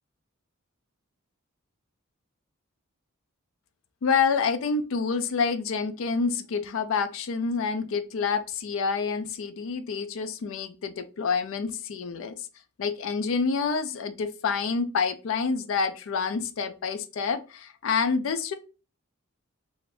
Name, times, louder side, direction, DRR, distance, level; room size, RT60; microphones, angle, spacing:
voice 1, 4.0-12.4 12.8-18.5, left 5 dB, 70° left, 10 dB, 0.4 m, -28 dB
2.5 x 2.5 x 3.2 m, 0.32 s
head